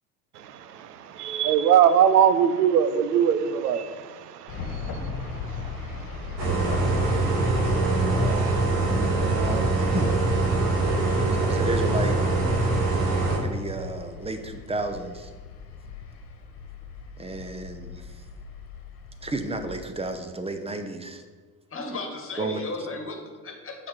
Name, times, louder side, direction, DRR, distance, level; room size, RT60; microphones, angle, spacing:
voice 1, 0.4-6.5 6.8-8.6, right 8 dB, 85° right, 13 dB, 0.6 m, -24 dB
sound 1, 4.5-19.8, left 4 dB, 50° left, 1.4 m, -38 dB
sound 2, 6.4-13.4, right 3 dB, 60° right, 2.1 m, -23 dB
voice 2, 9.3-10.1 11.3-12.2 13.4-15.3 17.2-18.2 19.2-21.2 22.4-22.6, right 2 dB, 15° right, 8 dB, 0.9 m, -32 dB
voice 3, 21.7-23.7, left 2 dB, 30° left, 2 dB, 1.7 m, -35 dB
6.1 x 4.2 x 6.3 m, 1.4 s
hypercardioid pair, 65°, 46 cm